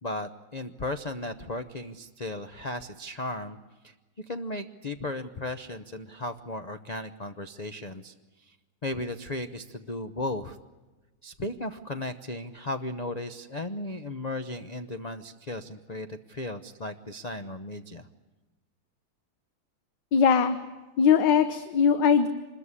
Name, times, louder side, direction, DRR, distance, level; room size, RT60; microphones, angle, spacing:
voice 1, 0.0-3.6 3.8-3.9 4.3-8.6 8.8-10.6 11.2-18.1, left 2 dB, 50° left, 8 dB, 0.5 m, -35 dB
voice 2, 20.1-20.6 21.0-22.3, left 6 dB, 65° left, 9 dB, 1.7 m, -20 dB
25.5 x 21.5 x 9.8 m, 1.2 s
omnidirectional pair, 2.2 m